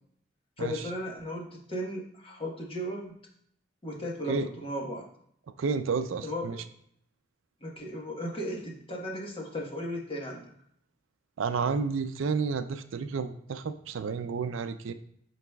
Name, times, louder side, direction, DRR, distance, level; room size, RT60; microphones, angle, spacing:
voice 1, 0.6-3.1 3.8-5.0 6.2-6.6 7.6-10.5, equal, 30° left, -1 dB, 1.2 m, -36 dB
voice 2, 5.6-6.6 11.4-14.9, right 5 dB, 80° right, 10 dB, 0.4 m, -31 dB
11.0 x 4.0 x 2.3 m, 0.67 s
head